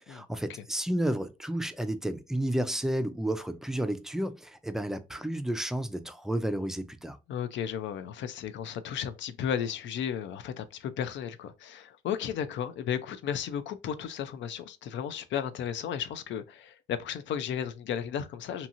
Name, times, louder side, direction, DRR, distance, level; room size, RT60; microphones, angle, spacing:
voice 1, 0.0-7.2, right 1 dB, ahead, 0.4 m, -31 dB
voice 2, 7.3-18.7, left 8 dB, 70° left, 0.5 m, -34 dB
2.8 x 2.7 x 2.5 m
cardioid pair, 90°, 20 cm